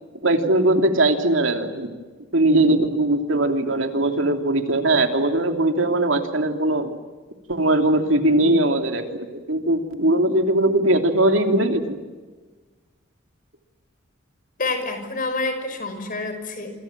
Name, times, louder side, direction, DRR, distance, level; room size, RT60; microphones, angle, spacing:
voice 1, 0.2-1.9 2.3-6.9 7.5-12.0, right 1 dB, 70° right, 5 dB, 3.0 m, -20 dB
voice 2, 14.6-16.7, left 3 dB, 45° left, 8 dB, 5.8 m, -27 dB
27.5 x 26.5 x 7.5 m, 1.3 s
head